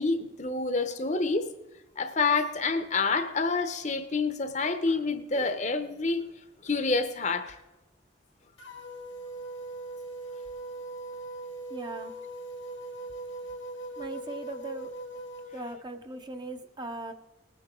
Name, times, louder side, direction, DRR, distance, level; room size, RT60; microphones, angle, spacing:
voice 1, 0.0-1.5 2.0-6.2 6.6-7.6, left 3 dB, 35° left, 0.9 m, -28 dB
sound 1, 8.6-15.8, right 2 dB, 85° left, 1.9 m, -40 dB
voice 2, 11.7-12.2 14.0-14.9 15.5-17.1, right 2 dB, 20° right, 0.8 m, -39 dB
19.5 x 9.4 x 3.8 m
head